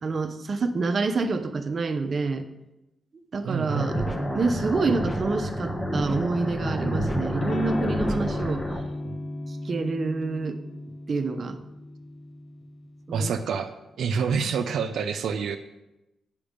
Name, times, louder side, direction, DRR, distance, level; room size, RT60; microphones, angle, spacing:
voice 1, 0.0-2.4 3.3-4.0 4.3-8.6 9.5-10.6 11.1-11.6 13.1-13.3, right 3 dB, 45° right, 8 dB, 0.7 m, -27 dB
voice 2, 3.4-4.1 9.0-9.3 13.1-13.7 14.0-15.6, right 6 dB, 85° right, 6 dB, 0.5 m, -27 dB
sound 1, 3.7-8.8, equal, 10° left, 1.0 m, -29 dB
Electric guitar / Strum, 7.4-13.1, left 2 dB, 55° left, 0.7 m, -35 dB
8.6 x 5.2 x 5.1 m, 0.93 s
cardioid pair, 95°, 0 cm